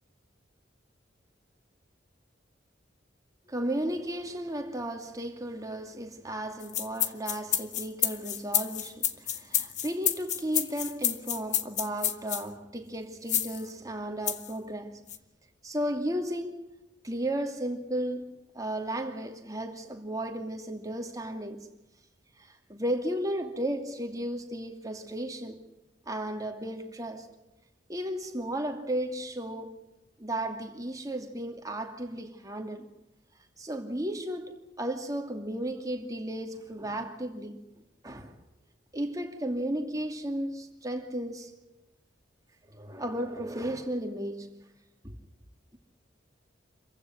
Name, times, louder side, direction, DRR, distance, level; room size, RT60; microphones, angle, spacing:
voice 1, 3.5-15.0 15.6-16.7 17.0-21.7 22.4-25.6 26.1-27.3 27.9-29.8 30.2-32.9 33.6-37.6 38.0-38.4 38.9-41.5 42.6-44.6 45.0-45.2, right 1 dB, 20° right, 2.5 m, -34 dB
sound 1, 6.6-12.4 13.3-13.6 14.3-14.5 15.1-15.2, left 10 dB, 40° left, 1.2 m, -29 dB
27.0 x 15.5 x 7.7 m
head